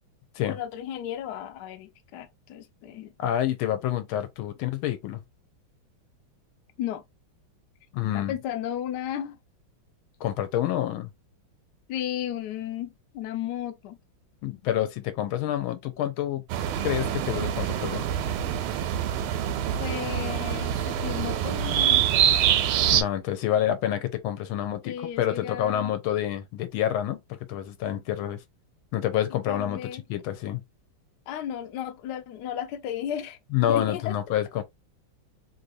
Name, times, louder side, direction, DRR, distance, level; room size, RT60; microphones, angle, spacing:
voice 1, 0.5-3.1 6.8-7.0 8.1-9.4 11.9-14.0 19.8-22.1 24.8-25.9 29.5-30.0 31.3-33.4 33.7-34.2, left 10 dB, 70° left, 1.0 m, -34 dB
voice 2, 3.2-5.2 7.9-8.3 10.2-11.1 14.4-16.4 16.8-18.0 22.9-27.2 27.5-28.4 28.9-29.8 30.1-30.6 33.5-34.6, left 11 dB, 90° left, 1.5 m, -28 dB
sound 1, 16.5-23.0, right 10 dB, 90° right, 1.5 m, -25 dB
3.3 x 2.7 x 2.5 m
omnidirectional pair, 2.3 m